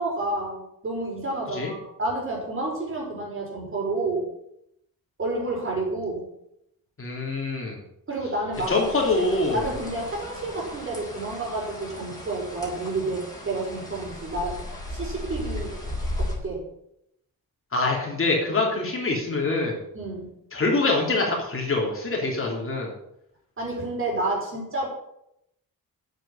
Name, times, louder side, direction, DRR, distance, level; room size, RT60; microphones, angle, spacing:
voice 1, 0.0-4.3 5.2-6.3 8.1-8.7 9.5-14.6 14.9-15.7 16.2-16.6 19.9-20.3 23.6-24.9, right 2 dB, 35° right, -2 dB, 5.5 m, -30 dB
voice 2, 7.0-7.8 8.7-9.6 17.7-19.8 20.5-22.9, left 2 dB, 35° left, -1 dB, 3.3 m, -25 dB
sound 1, 8.5-16.4, left 1 dB, 10° left, 4.3 m, -36 dB
8.8 x 8.2 x 8.6 m, 0.78 s
wide cardioid pair, 150°, 35 cm